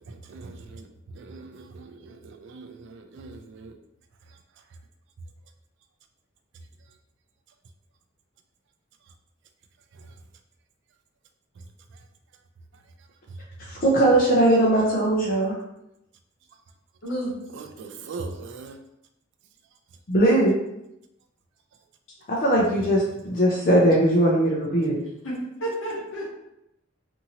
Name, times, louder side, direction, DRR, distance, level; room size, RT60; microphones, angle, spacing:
voice 1, 0.1-0.9 1.2-2.2 2.5-3.7 17.6-18.8, right 3 dB, 65° right, 0.4 m, -40 dB
voice 2, 13.6-15.5 20.1-20.6 22.3-25.0, right 1 dB, 45° left, 0.5 m, -20 dB
voice 3, 17.0-17.3 25.2-26.2, right 1 dB, 75° left, 0.9 m, -30 dB
2.7 x 2.6 x 2.8 m
head